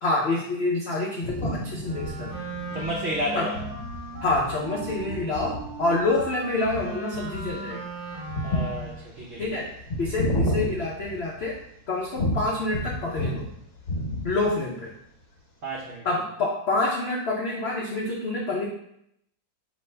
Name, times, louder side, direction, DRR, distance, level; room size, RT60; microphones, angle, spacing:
voice 1, 0.0-2.4 3.3-3.5 4.2-7.8 9.4-9.7 10.0-11.6 11.9-13.4 14.2-14.9 16.0-18.7, left 2 dB, 85° left, -3 dB, 0.5 m, -27 dB
sound 1, 1.2-11.6 12.2-13.5 13.8-14.6, equal, 45° left, 1.2 m, -31 dB
Wind instrument woodwind instrument, 1.8-9.1, right 2 dB, 25° right, 0.9 m, -37 dB
voice 2, 2.7-3.6 8.4-9.4 15.6-16.1, equal, 60° right, -4 dB, 0.7 m, -31 dB
5.4 x 3.0 x 3.3 m, 0.75 s
omnidirectional pair, 2.0 m